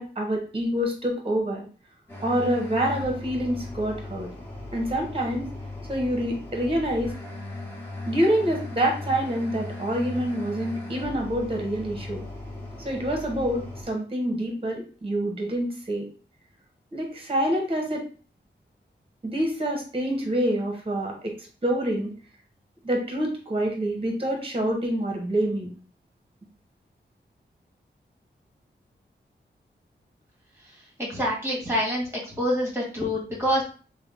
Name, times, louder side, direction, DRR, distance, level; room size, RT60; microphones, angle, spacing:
voice 1, 0.0-1.7 2.2-4.3 4.7-5.5 5.9-7.1 8.1-12.3 12.8-16.1 16.9-18.0 19.2-21.3 21.6-22.1 22.8-25.7, right 1 dB, 30° right, 1 dB, 1.1 m, -26 dB
sound 1, 2.1-13.8, left 2 dB, 10° left, 1.6 m, -38 dB
voice 2, 31.0-33.6, equal, 15° right, -3 dB, 1.9 m, -26 dB
3.6 x 2.3 x 3.6 m, 0.38 s
wide cardioid pair, 70°, 19 cm